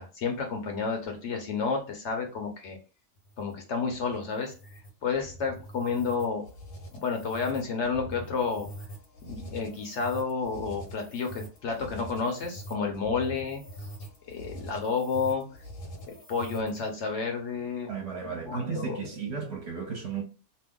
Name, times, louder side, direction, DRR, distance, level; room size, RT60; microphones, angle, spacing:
voice 1, 0.0-2.8 3.4-6.4 6.9-8.7 9.2-13.9 14.3-15.4 16.3-17.9 18.2-19.1, left 5 dB, 60° left, 0.9 m, -31 dB
sound 1, 3.2-17.0, right 1 dB, 80° left, 1.3 m, -44 dB
voice 2, 17.9-20.2, right 6 dB, 55° right, 0.9 m, -34 dB
2.7 x 2.2 x 3.5 m
omnidirectional pair, 1.5 m